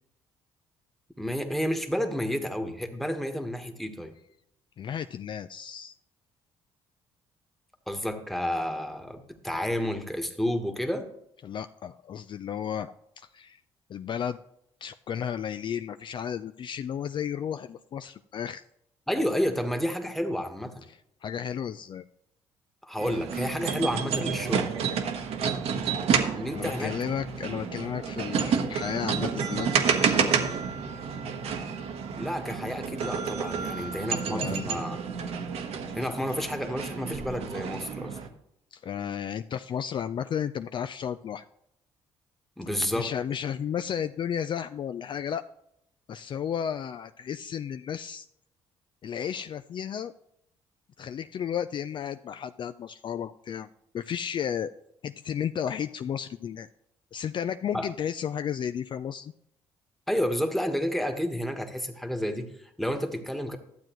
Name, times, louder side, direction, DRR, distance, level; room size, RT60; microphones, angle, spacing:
voice 1, 1.2-4.1 7.9-11.1 19.1-20.9 22.8-24.7 26.3-27.0 32.2-35.2 35.9-38.2 42.6-43.1 57.7-57.9 60.1-63.6, equal, ahead, 5 dB, 1.3 m, -30 dB
voice 2, 4.8-5.9 11.4-13.6 13.9-14.4 14.8-18.6 20.9-22.0 26.2-30.3 33.7-33.9 34.3-34.7 38.7-41.5 43.0-45.4 46.1-48.3 49.0-50.1 51.0-53.7 53.9-54.7 55.0-56.7 57.1-59.3, left 8 dB, 45° left, 11 dB, 0.3 m, -33 dB
sound 1, 23.0-38.3, right 6 dB, 65° right, 1.0 m, -30 dB
12.5 x 7.6 x 3.0 m, 0.76 s
supercardioid pair, 65°, 11 cm